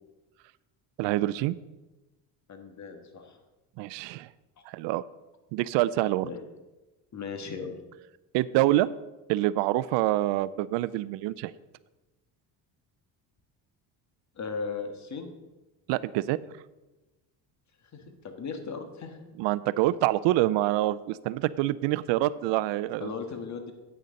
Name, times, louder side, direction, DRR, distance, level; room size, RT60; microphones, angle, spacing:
voice 1, 1.0-1.6 3.8-4.3 4.7-5.0 5.5-6.3 8.3-8.9 9.3-11.5 15.9-16.4 19.4-23.1, right 15 dB, 75° right, 18 dB, 0.5 m, -26 dB
voice 2, 2.5-3.4 6.2-6.4 7.1-7.7 14.4-15.3 17.9-19.2 23.0-23.7, left 5 dB, 40° left, 6 dB, 1.5 m, -37 dB
8.9 x 6.7 x 6.4 m, 1.1 s
cardioid pair, 105°, 44 cm